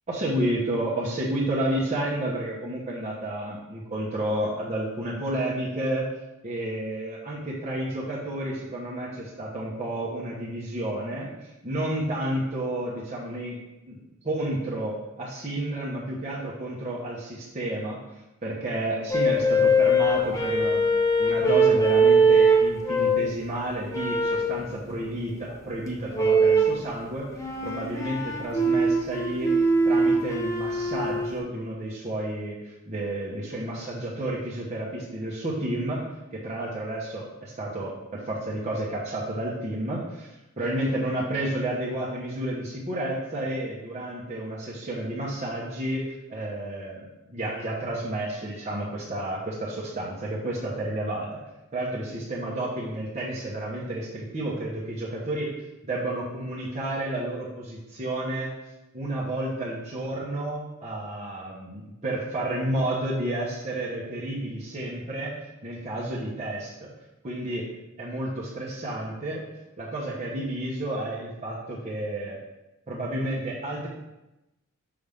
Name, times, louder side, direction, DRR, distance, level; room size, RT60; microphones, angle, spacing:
voice 1, 0.1-6.1 6.4-13.5 13.9-20.8 21.2-29.5 29.8-36.0 36.3-51.3 51.7-55.5 55.8-58.5 58.9-65.3 65.6-66.9 67.2-67.7 68.0-69.4 69.8-72.4 72.9-73.9, right 1 dB, 35° right, -6 dB, 1.1 m, -31 dB
sound 1, 19.1-23.3 23.9-24.5 26.1-26.8 27.4-31.3, right 2 dB, 15° left, 0.8 m, -21 dB
6.0 x 5.4 x 3.5 m, 0.97 s
head